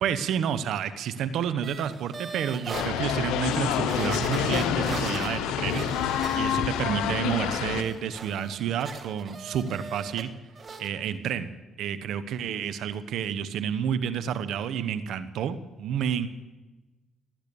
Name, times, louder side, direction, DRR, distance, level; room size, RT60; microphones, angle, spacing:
voice 1, 0.0-10.3 10.8-11.5 11.8-16.3, right 8 dB, 75° right, 13 dB, 1.0 m, -30 dB
sound 1, 1.6-2.9 3.4-3.5 3.9-6.8 7.2-10.3 10.5-10.9 11.2-11.3, right 4 dB, 50° right, 1.7 m, -40 dB
sound 2, 2.7-7.8, left 9 dB, 85° left, 1.0 m, -27 dB
19.0 x 10.0 x 7.0 m, 1.1 s
supercardioid pair, 65°, 0 cm